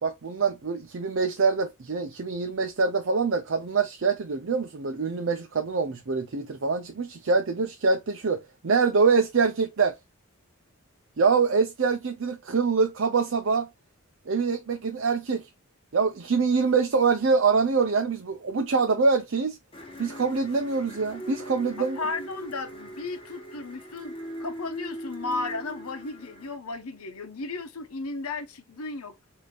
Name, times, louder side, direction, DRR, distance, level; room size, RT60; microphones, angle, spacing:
voice 1, 0.0-9.9 11.2-13.7 14.3-15.5 15.9-19.6 20.0-22.0, right 4 dB, 60° right, 0.6 m, -25 dB
sound 1, 19.7-26.5, equal, 25° left, 1.1 m, -40 dB
voice 2, 21.8-24.1 24.4-29.2, left 3 dB, 85° left, 0.9 m, -34 dB
5.1 x 2.8 x 2.3 m
head